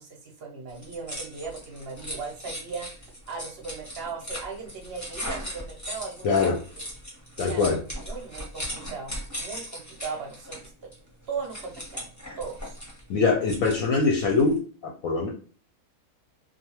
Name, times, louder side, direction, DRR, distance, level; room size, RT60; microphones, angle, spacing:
voice 1, 0.0-2.9 3.3-6.8 7.4-10.7 11.3-12.8, right 5 dB, 55° right, 1 dB, 0.7 m, -38 dB
sound 1, 0.7-14.6, equal, 15° left, 0.6 m, -38 dB
voice 2, 6.2-6.6 7.4-7.8 13.1-15.3, left 4 dB, 70° left, 1 dB, 0.9 m, -23 dB
2.4 x 2.2 x 2.9 m, 0.40 s
omnidirectional pair, 1.6 m